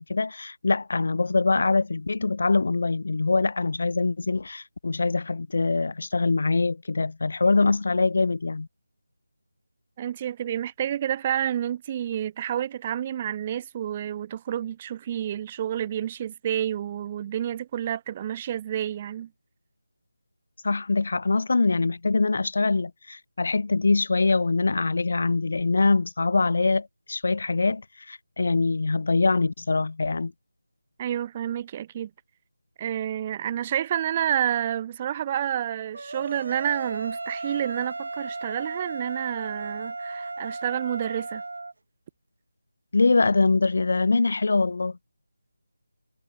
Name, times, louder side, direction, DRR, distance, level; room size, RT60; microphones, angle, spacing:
voice 1, 0.0-8.7 20.6-27.8 28.1-30.3 42.9-45.0, left 3 dB, 55° left, 1.4 m, -23 dB
voice 2, 10.0-19.3 31.0-32.1 32.8-41.4, right 10 dB, 20° right, 1.4 m, -29 dB
sound 1, 35.9-41.7, right 3 dB, 65° right, 3.1 m, -35 dB
figure-of-eight pair, 165°, 0 cm